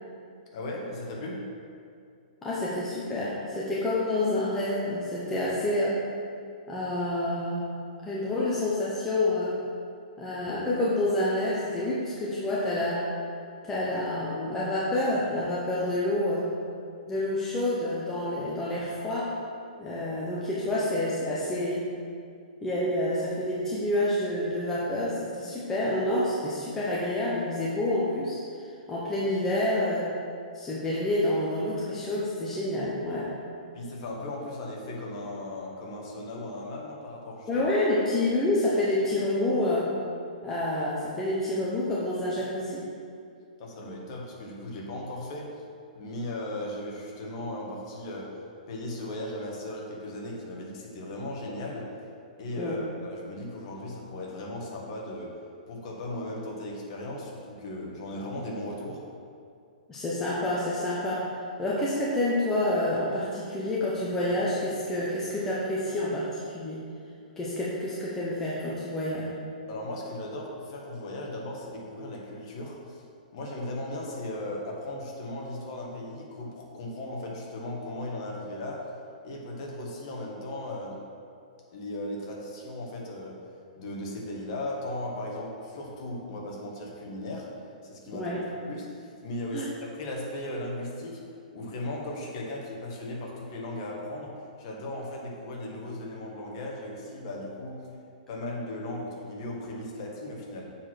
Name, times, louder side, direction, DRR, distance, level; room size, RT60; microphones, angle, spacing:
voice 1, 0.5-1.4 33.7-37.7 43.6-45.6 45.9-48.4 48.7-51.9 52.4-55.4 55.7-59.0 69.7-73.0 73.3-78.9 79.2-81.0 81.7-83.4 83.7-87.5 87.8-88.3 88.7-91.2 91.5-97.9 98.3-100.7, left 1 dB, 35° left, -2 dB, 1.5 m, -37 dB
voice 2, 2.4-6.0 6.7-7.6 8.0-9.6 10.2-13.1 13.6-16.5 17.1-19.3 19.8-21.9 22.6-28.4 28.9-30.1 30.5-33.3 37.5-39.9 40.4-42.8 52.6-52.8 59.9-61.3 61.6-66.8 67.4-69.3 88.1-88.4 89.5-89.7, left 1 dB, 10° left, -7 dB, 0.7 m, -28 dB
7.1 x 4.7 x 6.0 m, 2.3 s
hypercardioid pair, 170°, 5 cm